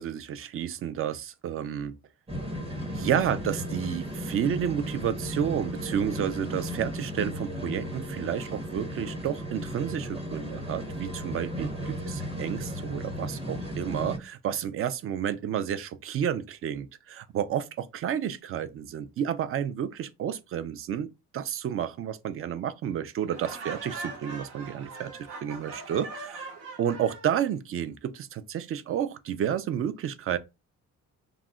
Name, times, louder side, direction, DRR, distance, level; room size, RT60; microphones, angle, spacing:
voice 1, 0.0-1.9 3.0-26.5 26.8-30.4, right 9 dB, 50° right, 0.4 m, -31 dB
sound 1, 2.3-14.2, equal, 20° right, 0.7 m, -35 dB
Laughter, 23.3-27.3, right 3 dB, 85° right, 0.8 m, -41 dB
2.4 x 2.0 x 3.5 m
cardioid pair, 90°, 30 cm